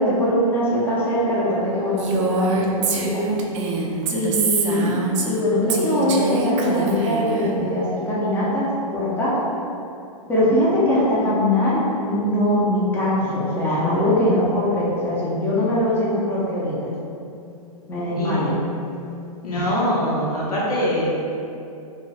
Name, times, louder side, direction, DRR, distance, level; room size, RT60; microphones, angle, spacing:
voice 1, 0.0-3.2 4.1-9.4 10.3-16.9 17.9-18.6 19.5-19.7, left 1 dB, 10° left, -8 dB, 0.6 m, -21 dB
Female speech woman speaking, 2.0-5.4 5.7-7.5, right 4 dB, 50° right, 0.4 m, -24 dB
voice 2, 19.4-21.1, equal, 80° left, -7 dB, 0.9 m, -23 dB
2.3 x 2.3 x 3.3 m, 2.7 s
hypercardioid pair, 135°, 19 cm